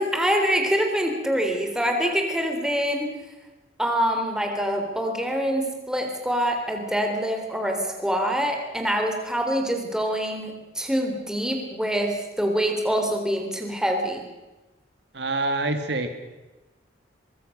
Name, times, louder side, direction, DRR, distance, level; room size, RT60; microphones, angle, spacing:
voice 1, 0.0-3.1 3.8-14.2, equal, 5° right, 3 dB, 3.6 m, -25 dB
voice 2, 15.1-16.1, right 2 dB, 65° right, 7 dB, 2.1 m, -26 dB
24.0 x 22.5 x 6.6 m, 1.1 s
head